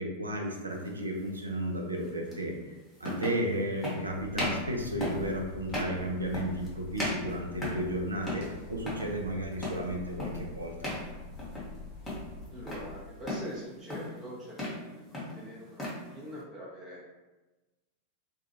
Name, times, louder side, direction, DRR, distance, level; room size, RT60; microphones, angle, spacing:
voice 1, 0.0-2.5 3.0-10.9, right 1 dB, 80° right, 1 dB, 0.4 m, -33 dB
sound 1, 0.8-1.0 2.3-2.4 3.0-3.4 3.8-4.0 4.3-4.7 5.0-5.3 5.7-6.0 6.3-6.7 7.0-7.9 8.2-8.5 8.8-9.1 9.6-9.9 10.2-10.5 10.8-11.1 11.4-11.8 12.0-12.9 13.3-13.5 13.9-14.2 14.5-14.8 15.1-16.0, left 1 dB, 15° left, 0.8 m, -35 dB
sound 2, 4.1-13.4, left 2 dB, 55° left, 0.7 m, -45 dB
voice 2, 12.5-17.0, equal, 25° right, -6 dB, 0.6 m, -44 dB
2.3 x 2.3 x 2.8 m, 1.1 s
figure-of-eight pair, 90°, 0 cm